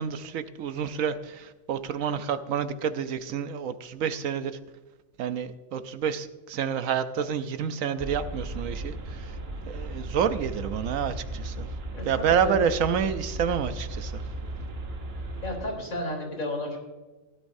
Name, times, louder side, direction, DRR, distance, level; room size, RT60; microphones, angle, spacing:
voice 1, 0.0-4.6 5.2-9.4 9.7-11.7 12.0-14.2, right 7 dB, 75° right, 11 dB, 1.1 m, -29 dB
sound 1, 8.0-15.7, right 1 dB, 50° right, 1.2 m, -36 dB
voice 2, 11.9-12.5 15.4-16.8, left 1 dB, 80° left, -1 dB, 4.1 m, -33 dB
16.5 x 11.5 x 2.7 m, 1.2 s
omnidirectional pair, 1.4 m